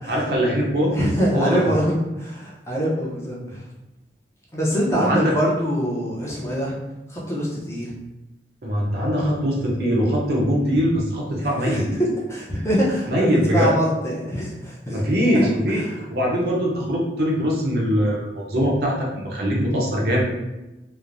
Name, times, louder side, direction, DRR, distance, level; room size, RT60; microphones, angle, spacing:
voice 1, 0.1-1.0 1.3-1.7 4.9-5.4 8.6-11.8 13.1-13.7 14.9-15.9 16.1-20.2, equal, 60° right, -3 dB, 0.6 m, -22 dB
voice 2, 0.9-3.6 4.5-6.7 7.1-7.9 11.4-15.0 15.3-15.5 15.8-16.0, equal, 15° left, -5 dB, 0.5 m, -24 dB
3.0 x 2.0 x 2.5 m, 1.0 s
head